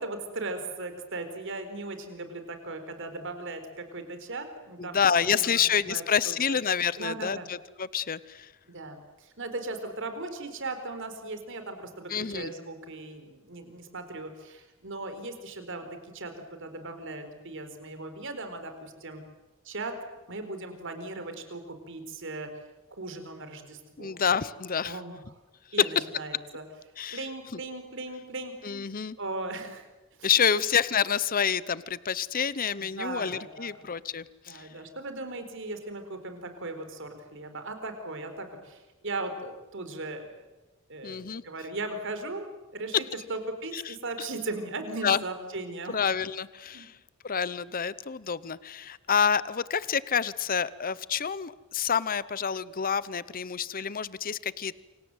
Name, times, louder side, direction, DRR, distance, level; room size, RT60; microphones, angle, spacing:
voice 1, 0.0-5.0 5.2-6.0 6.5-6.6 7.0-7.5 8.7-15.9 16.1-19.2 19.6-19.9 20.3-22.5 22.9-24.2 24.8-25.2 25.7-26.7 27.1-28.8 29.2-29.8 30.2-30.6 33.0-33.9 34.5-40.4 40.9-46.0 46.7-46.8, right 2 dB, 60° right, 8 dB, 4.4 m, -38 dB
voice 2, 4.8-8.5 12.1-12.5 24.0-25.0 27.0-27.2 27.5-27.6 28.6-29.2 30.2-34.7 41.0-41.4 43.7-43.9 45.0-45.2 45.9-47.0 47.2-54.8, left 7 dB, 40° left, 18 dB, 0.8 m, -28 dB
28.0 x 25.5 x 8.1 m, 1.1 s
head